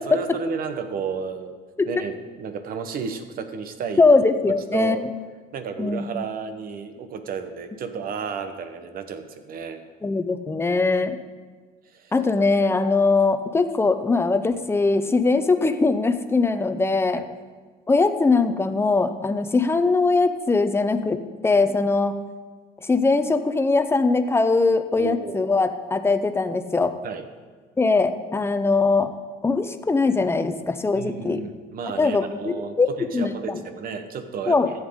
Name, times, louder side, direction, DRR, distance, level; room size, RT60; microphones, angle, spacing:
voice 1, 0.0-1.6 1.8-4.0 4.7-5.0 5.5-9.8 11.9-12.1 17.1-17.3 25.0-25.5 27.0-27.2 30.9-34.6, right 5 dB, 60° right, 9 dB, 1.0 m, -32 dB
voice 2, 4.0-5.0 5.8-6.2 10.0-11.2 12.1-17.2 17.9-22.2 22.8-26.9 27.8-29.1 29.4-31.4 32.0-32.2 32.8-33.6 34.5-34.7, left 3 dB, 15° left, 9 dB, 0.6 m, -21 dB
13.5 x 8.1 x 3.7 m, 1.4 s
cardioid pair, 110°, 17 cm